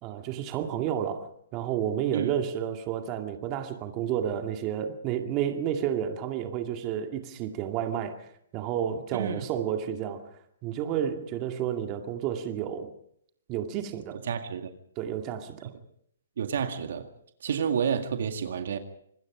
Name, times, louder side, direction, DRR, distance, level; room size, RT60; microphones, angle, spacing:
voice 1, 0.0-10.3 10.6-12.9 13.5-14.2 15.0-15.7, right 9 dB, 30° right, 2.1 m, -31 dB
voice 2, 9.1-9.4 14.1-14.7 16.4-17.1 17.4-18.8, right 7 dB, 60° right, 2.0 m, -29 dB
26.0 x 20.5 x 5.0 m
hypercardioid pair, 135°, 0 cm